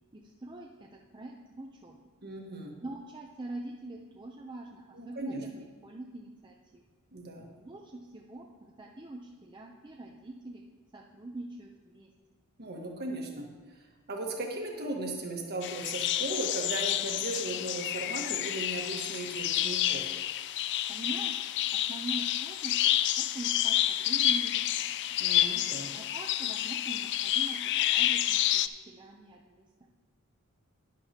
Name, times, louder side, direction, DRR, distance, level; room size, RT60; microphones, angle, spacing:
voice 1, 0.1-2.0 2.8-6.8 7.6-10.6 10.9-12.1 20.9-22.8 23.2-24.9 25.9-29.9, right 2 dB, 20° right, -1 dB, 0.6 m, -44 dB
voice 2, 2.2-2.8 4.9-5.4 7.1-7.5 12.6-13.5 13.7-20.1 25.2-25.9, right 2 dB, 45° right, 1 dB, 1.4 m, -37 dB
sound 1, 15.6-28.7, left 12 dB, 50° left, 0.3 m, -29 dB
11.5 x 9.9 x 2.9 m, 1.3 s
head